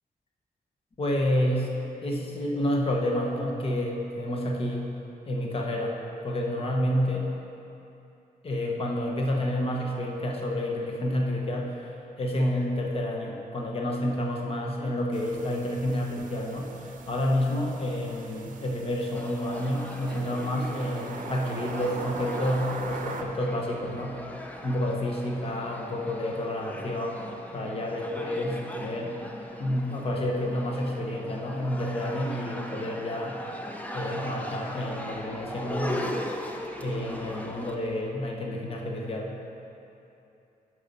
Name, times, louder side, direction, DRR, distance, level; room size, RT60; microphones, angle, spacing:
voice 1, 1.0-1.7 2.0-4.9 5.3-6.0 6.2-7.3 8.4-24.2 24.6-27.2 27.5-29.2 29.6-33.4 33.9-36.0 36.8-39.4, left 1 dB, 40° left, 0 dB, 0.9 m, -29 dB
sound 1, 15.1-23.2, right 4 dB, 60° right, 0.6 m, -41 dB
sound 2, 19.1-37.7, left 1 dB, 10° left, 0.6 m, -39 dB
9.2 x 6.2 x 5.4 m, 2.8 s
wide cardioid pair, 155°, 15 cm